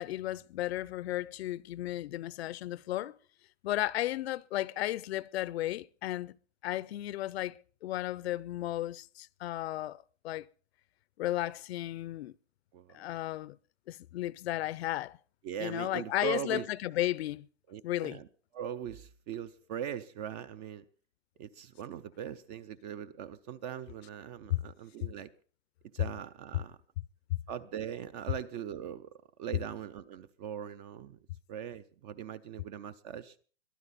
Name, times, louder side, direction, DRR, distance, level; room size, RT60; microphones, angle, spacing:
voice 1, 0.0-3.2 3.6-6.4 6.6-10.5 11.2-12.3 12.9-13.6 13.9-15.2 15.6-17.5 17.8-18.2 24.5-24.6 25.0-25.1 27.3-27.4, left 15 dB, 55° left, 0.6 m, -34 dB
voice 2, 15.4-16.7 17.7-18.3 18.5-20.8 21.4-25.3 25.9-26.8 27.5-29.1 29.4-31.2 31.5-33.4, right 9 dB, 35° right, 0.6 m, -40 dB
22.5 x 12.5 x 4.1 m
hypercardioid pair, 140°, 38 cm